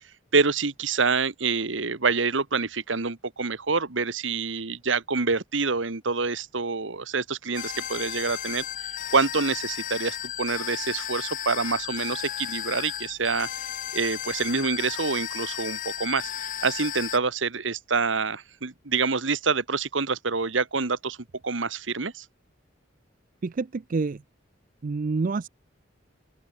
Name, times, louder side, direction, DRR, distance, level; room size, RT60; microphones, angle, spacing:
voice 1, 0.3-13.5 13.9-21.2 21.4-22.3, right 4 dB, 70° right, 1.5 m, -27 dB
sound 1, 7.5-17.2, left 11 dB, 40° left, 0.4 m, -34 dB
voice 2, 23.4-24.2 24.8-25.5, right 4 dB, 45° right, 0.4 m, -27 dB
open air
head